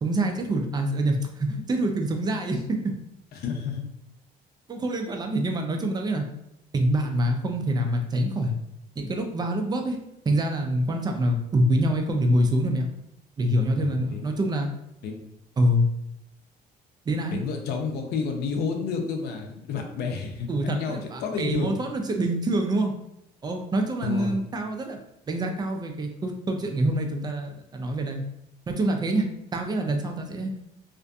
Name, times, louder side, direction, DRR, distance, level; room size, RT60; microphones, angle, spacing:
voice 1, 0.0-2.9 4.7-6.2 6.7-8.5 9.0-10.0 10.3-12.9 13.4-14.7 15.6-15.9 17.1-17.4 20.5-22.9 23.4-25.0 25.3-28.2 28.7-30.5, right 1 dB, 25° right, 4 dB, 0.4 m, -25 dB
voice 2, 3.3-3.8 11.1-11.2 13.8-14.3 15.0-15.2 17.3-21.7 24.0-24.4, left 5 dB, 70° left, 3 dB, 0.5 m, -30 dB
2.5 x 2.5 x 2.2 m, 0.80 s
cardioid pair, 110°, 17 cm